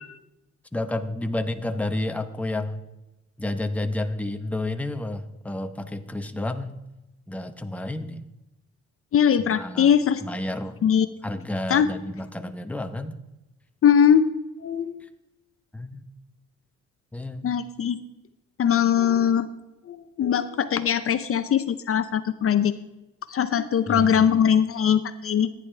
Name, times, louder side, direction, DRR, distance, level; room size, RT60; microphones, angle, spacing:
voice 1, 0.7-2.8 3.4-6.8 7.3-8.2 9.5-9.9 10.2-10.9 11.2-13.1 15.7-16.0 17.1-17.4 23.9-24.4, left 1 dB, 5° left, 7 dB, 0.8 m, -30 dB
voice 2, 9.1-10.2 10.8-11.1 11.7-11.9 13.8-14.3 14.6-15.0 17.4-18.0 18.6-19.5 19.9-22.7 23.3-25.5, left 8 dB, 50° left, 12 dB, 0.6 m, -21 dB
14.5 x 9.8 x 3.3 m, 0.96 s
cardioid pair, 90°, 30 cm